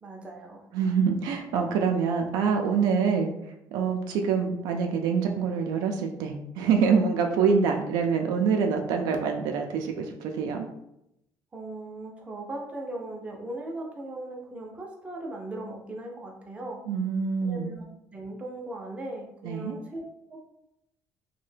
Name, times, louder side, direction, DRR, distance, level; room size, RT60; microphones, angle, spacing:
voice 1, 0.0-0.7 11.5-16.8 17.4-17.9 18.1-20.0 20.3-20.4, right 2 dB, 20° right, 0 dB, 0.5 m, -38 dB
voice 2, 0.7-10.7 16.9-17.7 19.4-19.8, right 6 dB, 75° right, 4 dB, 0.4 m, -25 dB
2.6 x 2.1 x 3.2 m, 0.83 s
cardioid pair, 140°, 7 cm